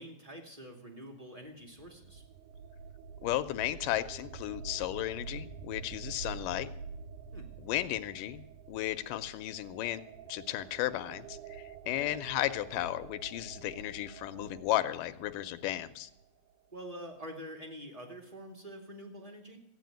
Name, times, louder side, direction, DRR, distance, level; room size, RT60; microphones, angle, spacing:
voice 1, 0.0-2.2 7.3-7.5 11.8-12.2 16.7-19.6, equal, 10° right, 2 dB, 2.0 m, -46 dB
sound 1, 1.5-16.3, right 6 dB, 75° right, 2.3 m, -47 dB
voice 2, 3.2-6.7 7.6-10.0 10.3-16.1, left 14 dB, 80° left, 12 dB, 2.2 m, -34 dB
15.5 x 8.9 x 9.2 m, 0.75 s
omnidirectional pair, 3.9 m